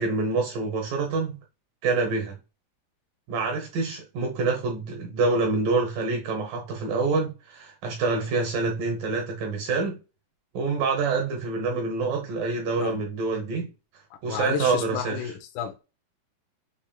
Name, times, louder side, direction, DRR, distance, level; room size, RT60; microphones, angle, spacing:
voice 1, 0.0-1.4 1.8-2.4 3.3-10.0 10.5-13.7 14.2-15.3, right 3 dB, 70° right, 2.3 m, -26 dB
voice 2, 14.3-15.8, left 8 dB, 90° left, 1.7 m, -32 dB
7.1 x 3.1 x 2.2 m
omnidirectional pair, 4.9 m